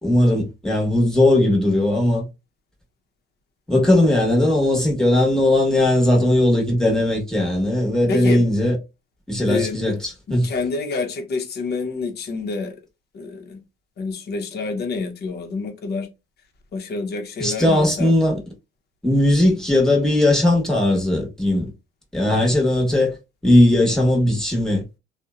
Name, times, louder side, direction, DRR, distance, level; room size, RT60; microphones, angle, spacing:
voice 1, 0.0-2.2 3.7-8.8 9.3-10.5 17.4-18.4 19.0-21.7 22.1-23.1 23.4-24.8, left 1 dB, 5° left, 1.0 m, -18 dB
voice 2, 8.1-8.4 9.5-10.0 10.3-12.8 13.1-13.6 14.0-16.1 16.7-18.1 22.3-22.5, left 3 dB, 55° left, 0.7 m, -27 dB
2.7 x 2.1 x 2.3 m
cardioid pair, 90°, 20 cm